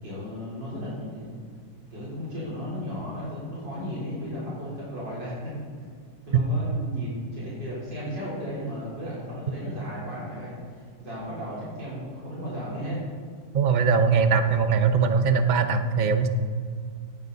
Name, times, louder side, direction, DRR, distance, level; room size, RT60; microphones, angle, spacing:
voice 1, 0.0-1.4 1.9-5.9 6.3-13.0, equal, 70° right, -8 dB, 4.6 m, -35 dB
voice 2, 13.5-16.3, right 5 dB, 45° right, 8 dB, 0.5 m, -21 dB
18.0 x 10.5 x 4.1 m, 2.1 s
omnidirectional pair, 2.0 m